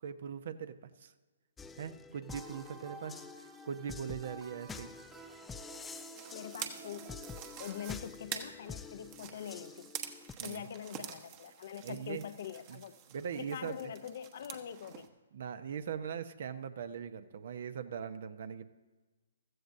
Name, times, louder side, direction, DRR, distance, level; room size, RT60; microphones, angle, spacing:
voice 1, 0.0-0.7 1.0-1.1 1.8-4.9 10.4-10.6 11.8-12.2 12.7-12.8 13.1-13.9 15.3-18.6, right 7 dB, 60° right, 11 dB, 0.8 m, -41 dB
sound 1, 1.6-10.3, left 5 dB, 10° left, 0.4 m, -48 dB
sound 2, 2.3-7.9, right 3 dB, 15° right, 1.0 m, -52 dB
sound 3, 5.9-15.1, right 9 dB, 35° right, 1.2 m, -47 dB
voice 2, 6.3-9.9 10.4-12.9 13.3-15.1, left 9 dB, 55° left, 12 dB, 0.7 m, -44 dB
15.5 x 14.0 x 2.7 m, 1.3 s
hypercardioid pair, 130°, 0 cm